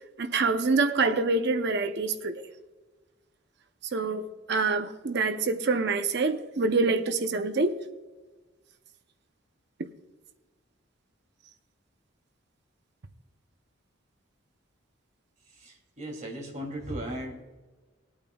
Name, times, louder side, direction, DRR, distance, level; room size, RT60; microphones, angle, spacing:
voice 1, 0.2-2.5 3.9-7.8, right 3 dB, 55° right, 0.6 m, -26 dB
voice 2, 15.6-17.4, right 1 dB, 35° right, 2.7 m, -37 dB
20.5 x 8.7 x 2.3 m
head